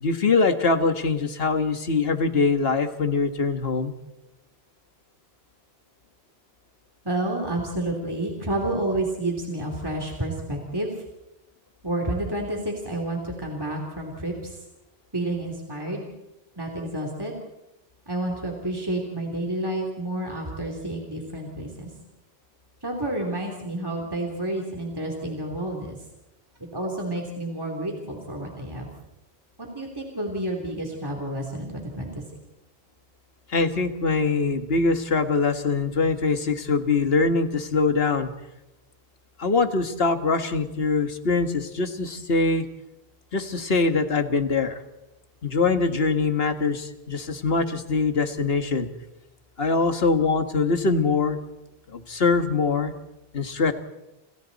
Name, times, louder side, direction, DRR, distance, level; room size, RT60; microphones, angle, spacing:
voice 1, 0.0-3.9 33.5-38.3 39.4-42.7 43.3-44.8 45.4-48.9 49.6-51.4 51.9-52.9 53.3-53.7, left 4 dB, 70° left, 8 dB, 1.8 m, -23 dB
voice 2, 7.0-10.9 11.8-14.6 15.1-16.0 16.6-17.3 18.1-21.9 22.8-26.0 26.6-28.9 29.6-32.2, right 1 dB, 20° right, 0 dB, 3.2 m, -30 dB
29.5 x 28.0 x 4.1 m, 0.95 s
omnidirectional pair, 1.1 m